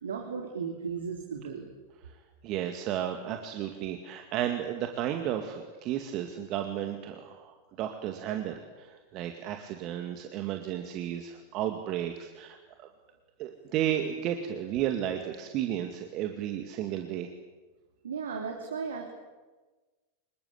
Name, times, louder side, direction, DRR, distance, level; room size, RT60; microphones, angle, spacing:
voice 1, 0.0-1.7 18.0-19.1, right 6 dB, 65° right, 2 dB, 3.3 m, -35 dB
voice 2, 2.4-12.9 13.4-17.3, right 11 dB, 40° right, 5 dB, 2.2 m, -33 dB
26.0 x 22.5 x 8.4 m, 1.3 s
figure-of-eight pair, 90°, 0 cm